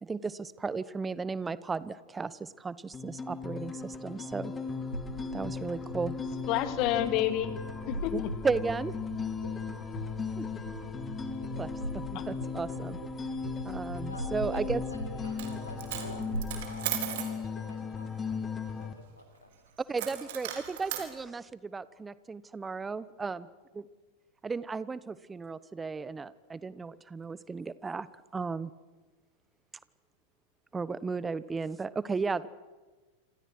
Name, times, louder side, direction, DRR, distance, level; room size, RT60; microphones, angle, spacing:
voice 1, 0.0-4.5 5.3-6.1 8.1-8.9 10.4-10.5 11.6-13.0 13.6-14.8 19.9-23.5 23.7-23.8 24.4-28.1 28.3-28.7 30.7-32.5, right 4 dB, 15° right, 18 dB, 1.1 m, -35 dB
sound 1, 2.9-18.9, left 5 dB, 15° left, 2.6 m, -37 dB
sound 2, 4.8-16.5, equal, 85° right, 3.0 m, -41 dB
voice 2, 6.5-7.5 7.9-8.3 12.1-12.2, left 13 dB, 40° left, 10 dB, 2.5 m, -29 dB
voice 3, 13.9-16.3 16.6-18.4 18.7-19.5, left 2 dB, 80° left, 7 dB, 4.4 m, -49 dB
Coin (dropping), 15.2-15.5 15.8-17.3 20.0-21.1, right 12 dB, 50° right, 4.1 m, -36 dB
28.5 x 26.5 x 6.2 m, 1.3 s
figure-of-eight pair, 90°, 0 cm